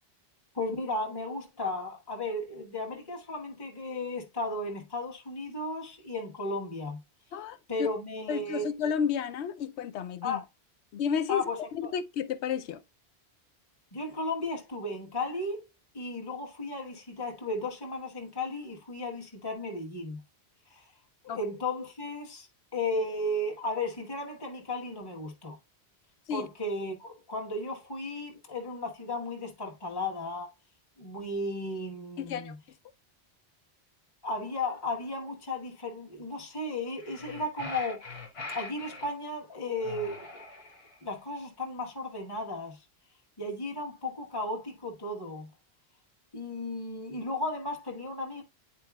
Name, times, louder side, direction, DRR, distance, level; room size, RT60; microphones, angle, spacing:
voice 1, 0.5-7.0 7.7-8.7 10.2-10.4 11.3-11.9 13.9-15.7 15.9-20.2 20.7-20.9 21.2-25.6 26.3-30.5 31.0-32.6 34.2-38.1 38.5-40.4 41.0-42.8 43.4-45.5 46.3-48.4, left 2 dB, 20° left, 1.2 m, -35 dB
voice 2, 7.3-7.9 8.3-10.4 10.9-11.4 11.7-12.8 21.3-21.4 26.3-26.5 32.2-32.5, left 7 dB, 90° left, 0.9 m, -32 dB
sound 1, 37.0-39.1 39.8-41.0, left 3 dB, 70° left, 1.4 m, -42 dB
9.7 x 4.5 x 2.3 m
omnidirectional pair, 1.1 m